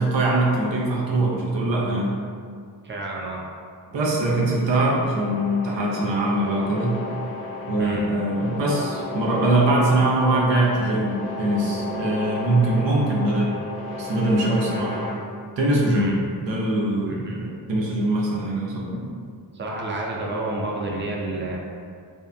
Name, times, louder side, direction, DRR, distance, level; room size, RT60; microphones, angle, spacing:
voice 1, 0.0-2.2 3.9-7.0 7.7-13.5 14.0-15.1 15.6-16.1 16.4-19.1, right 2 dB, 90° right, -4 dB, 0.6 m, -22 dB
voice 2, 2.8-3.4 7.8-8.1 15.9-16.1 17.0-17.5 19.5-21.6, right 2 dB, 30° right, -3 dB, 0.4 m, -30 dB
sound 1, 5.1-15.1, left 3 dB, 30° left, 0.7 m, -33 dB
2.7 x 2.2 x 2.4 m, 2.1 s
wide cardioid pair, 90°, 42 cm